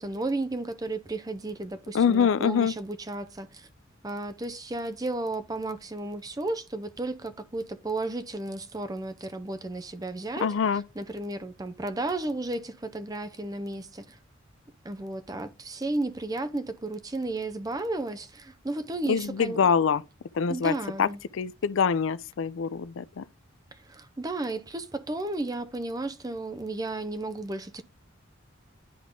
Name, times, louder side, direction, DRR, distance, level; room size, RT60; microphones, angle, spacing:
voice 1, 0.0-3.7 4.0-14.2 14.8-19.6 20.5-21.2 23.7-27.8, right 2 dB, 20° right, 0.5 m, -33 dB
voice 2, 1.9-2.7 10.4-10.8 19.1-20.0 20.3-20.7 21.0-21.1 21.3-23.2, left 6 dB, 70° left, 0.4 m, -24 dB
10.0 x 3.6 x 3.7 m
head